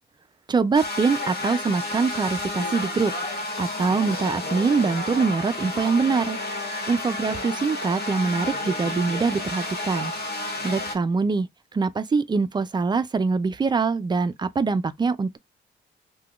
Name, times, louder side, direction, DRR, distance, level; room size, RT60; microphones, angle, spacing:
voice 1, 0.5-3.1 3.6-6.4 6.9-10.1 10.6-15.4, right 4 dB, 20° right, 0.4 m, -24 dB
sound 1, 0.7-11.0, left 2 dB, 50° left, 1.1 m, -31 dB
3.4 x 2.3 x 2.3 m
cardioid pair, 90°, 20 cm